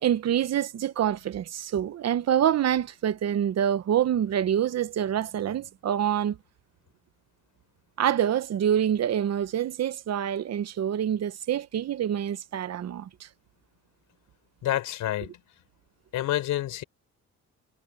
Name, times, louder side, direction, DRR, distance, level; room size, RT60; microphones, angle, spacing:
voice 1, 0.0-6.4 8.0-13.3, right 10 dB, 55° right, 1.0 m, -26 dB
voice 2, 14.6-15.4 16.1-16.8, left 13 dB, 85° left, 5.4 m, -28 dB
cardioid pair, 90°, 30 cm